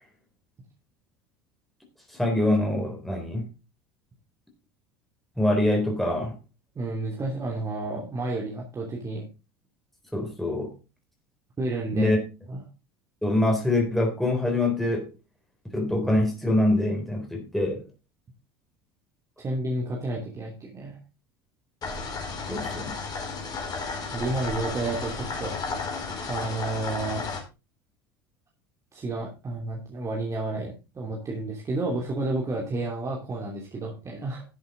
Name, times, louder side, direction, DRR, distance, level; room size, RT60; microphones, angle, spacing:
voice 1, 2.1-3.5 5.4-6.3 10.1-10.7 11.9-12.2 13.2-15.1 15.7-17.8 22.5-22.9, left 1 dB, ahead, 3.8 m, -24 dB
voice 2, 6.7-9.3 11.6-12.1 12.5-12.6 19.4-21.0 24.1-25.5 26.3-27.3 28.9-34.4, right 2 dB, 25° right, 2.9 m, -31 dB
sound 1, 21.8-27.4, left 4 dB, 35° left, 4.3 m, -33 dB
12.0 x 8.0 x 3.9 m
figure-of-eight pair, 70°, 12 cm